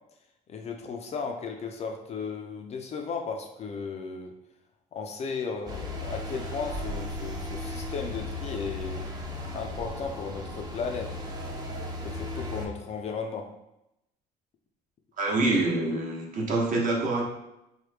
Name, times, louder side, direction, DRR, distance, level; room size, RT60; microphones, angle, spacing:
voice 1, 0.5-4.3 4.9-9.2 9.5-11.2 12.0-13.5, left 5 dB, 40° left, 3 dB, 0.4 m, -35 dB
sound 1, 5.7-12.7, left 1 dB, 25° right, 0.6 m, -36 dB
voice 2, 15.2-17.2, right 2 dB, 50° right, -2 dB, 0.9 m, -26 dB
3.2 x 2.1 x 3.3 m, 0.87 s
cardioid pair, 110°, 17 cm